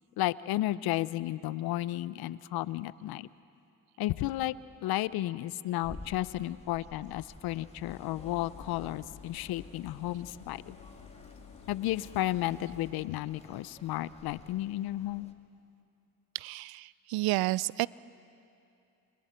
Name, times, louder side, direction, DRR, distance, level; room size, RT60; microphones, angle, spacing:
voice 1, 0.2-3.3 4.0-4.5 4.8-10.8 11.7-15.3, left 15 dB, 80° left, 17 dB, 0.7 m, -33 dB
sound 1, 5.8-15.3, left 2 dB, 15° left, 2.5 m, -52 dB
Engine, 7.9-12.9, left 7 dB, 55° left, 2.6 m, -52 dB
voice 2, 16.3-17.9, right 19 dB, 75° right, 21 dB, 0.5 m, -30 dB
30.0 x 28.5 x 4.4 m, 2.6 s
supercardioid pair, 50°, 37 cm